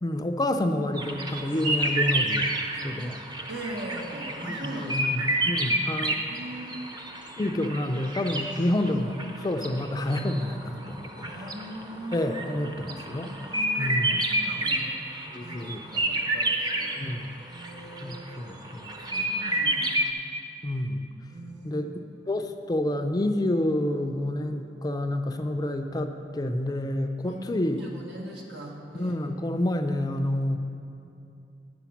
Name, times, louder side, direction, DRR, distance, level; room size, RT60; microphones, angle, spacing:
voice 1, 0.0-2.5 2.8-3.2 4.4-6.2 7.4-11.1 12.1-13.3 13.8-14.3 15.3-16.1 17.0-17.3 18.0-19.2 20.6-21.1 21.6-21.9 22.3-27.8 28.9-30.6, left 1 dB, 20° left, 7 dB, 0.4 m, -29 dB
sound 1, 1.0-17.1 17.5-20.1, right 1 dB, 25° right, 0.7 m, -29 dB
voice 2, 3.5-4.9 5.2-5.3 6.0-6.9 11.2-14.9 15.4-17.0 17.4-18.3 19.0-20.1 21.3-21.8 22.3-22.4 27.3-29.1, right 1 dB, 90° right, -1 dB, 1.6 m, -40 dB
9.2 x 7.1 x 5.8 m, 2.7 s
head